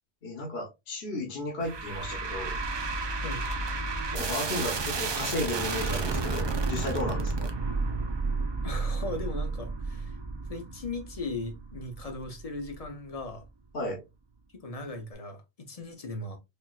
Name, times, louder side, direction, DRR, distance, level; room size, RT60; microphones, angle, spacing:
voice 1, 0.2-2.6 4.1-7.5 13.7-14.0, left 1 dB, 65° left, 1.1 m, -34 dB
sound 1, 1.6-12.9, right 3 dB, 45° right, 0.3 m, -32 dB
voice 2, 3.1-3.5 8.6-10.2 10.5-13.4 14.5-16.4, left 2 dB, 40° left, 0.7 m, -38 dB
4.3 x 2.5 x 2.3 m
omnidirectional pair, 1.1 m